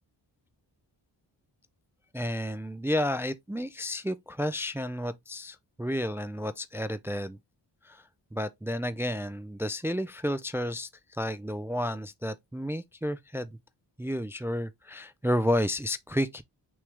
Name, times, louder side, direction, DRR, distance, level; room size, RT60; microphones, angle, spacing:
voice 1, 2.1-7.4 7.8-8.0 8.3-13.6 14.0-16.4, equal, 5° right, 0.3 m, -31 dB
6.1 x 2.3 x 3.3 m
cardioid pair, 65°, 43 cm